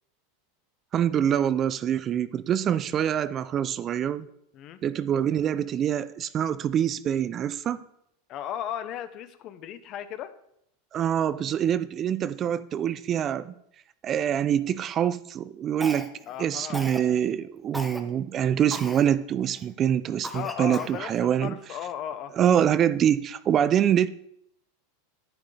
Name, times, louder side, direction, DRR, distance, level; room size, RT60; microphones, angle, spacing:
voice 1, 0.9-4.3 4.8-7.8 10.9-13.5 14.0-16.1 16.4-21.6 22.3-24.1, right 9 dB, 35° right, 15 dB, 0.4 m, -25 dB
voice 2, 8.3-10.3 16.3-16.8 20.3-22.3, left 10 dB, 45° left, 12 dB, 0.8 m, -35 dB
Cough, 15.8-16.3 16.7-17.1 17.7-18.0 18.7-19.1 19.6-19.7 20.2-21.0, equal, ahead, 1.0 m, -37 dB
10.5 x 9.7 x 3.3 m, 0.73 s
supercardioid pair, 120°, 0 cm